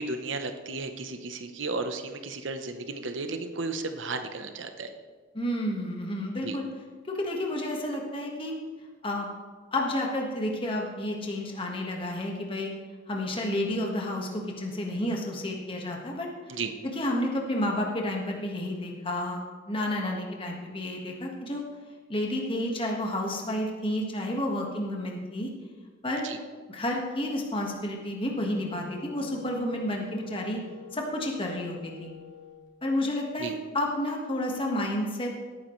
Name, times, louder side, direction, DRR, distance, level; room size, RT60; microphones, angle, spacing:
voice 1, 0.0-4.9 6.4-6.6 16.5-16.7 26.2-26.4 33.4-33.5, right 3 dB, 80° right, 7 dB, 0.9 m, -34 dB
voice 2, 5.3-6.6 7.1-8.5 9.0-9.4 9.7-12.7 13.1-16.3 16.9-19.4 19.7-21.6 22.1-25.5 26.0-26.3 26.7-30.6 30.9-32.1 32.8-35.3, left 1 dB, 25° left, 0 dB, 1.5 m, -30 dB
Wind instrument woodwind instrument, 28.1-32.6, left 6 dB, 70° left, 3.1 m, -48 dB
17.5 x 9.5 x 3.2 m, 1.5 s
head